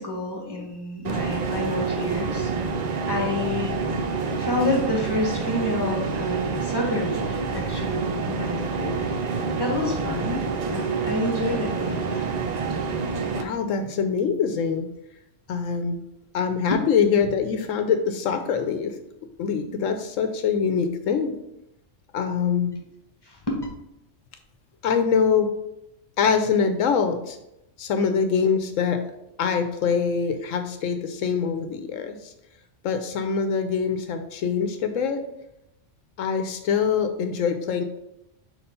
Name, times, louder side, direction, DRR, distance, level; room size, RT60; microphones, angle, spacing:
voice 1, 0.0-2.5 3.1-3.7 4.4-9.0 9.6-10.4 10.7-12.2 16.7-16.8 23.2-23.7, left 2 dB, 20° left, -1 dB, 1.4 m, -29 dB
sound 1, 1.0-13.4, right 4 dB, 50° right, 0.5 m, -27 dB
voice 2, 13.4-14.9 15.5-16.0 16.3-19.0 19.4-21.3 22.1-22.8 24.8-25.5 26.2-27.4 27.8-29.0 29.4-32.3 32.8-35.2 36.2-37.8, left 6 dB, 85° left, 7 dB, 1.0 m, -24 dB
4.3 x 4.3 x 5.5 m, 0.87 s
omnidirectional pair, 1.3 m